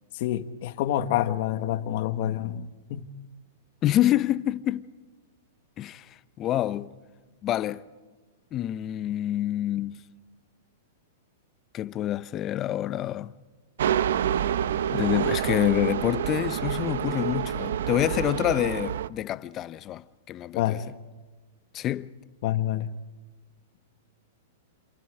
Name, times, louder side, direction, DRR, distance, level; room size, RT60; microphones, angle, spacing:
voice 1, 0.1-3.1 20.5-20.8 22.4-22.9, left 12 dB, 55° left, 1.3 m, -27 dB
voice 2, 3.8-4.9 5.8-6.1 6.4-6.9 7.4-7.8 8.5-10.0 11.7-13.3 14.9-20.8 21.7-22.1, left 13 dB, 30° left, 0.8 m, -27 dB
sound 1, 13.8-19.1, right 9 dB, 75° right, 0.7 m, -27 dB
28.0 x 27.0 x 5.0 m
hypercardioid pair, 140°, 0 cm